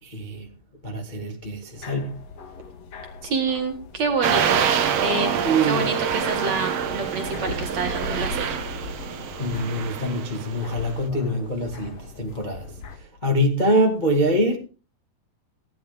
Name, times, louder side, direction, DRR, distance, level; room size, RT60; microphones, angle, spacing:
voice 1, 0.0-0.5 0.8-2.2 5.4-5.9 9.4-14.6, right 1 dB, 20° left, 1.4 m, -24 dB
sound 1, 1.7-13.0, left 3 dB, 50° left, 2.3 m, -39 dB
voice 2, 3.2-4.6 5.0-8.6, right 4 dB, 50° right, 2.6 m, -27 dB
sound 2, 4.2-10.9, right 8 dB, 75° right, 1.4 m, -26 dB
17.0 x 11.5 x 3.5 m
omnidirectional pair, 4.8 m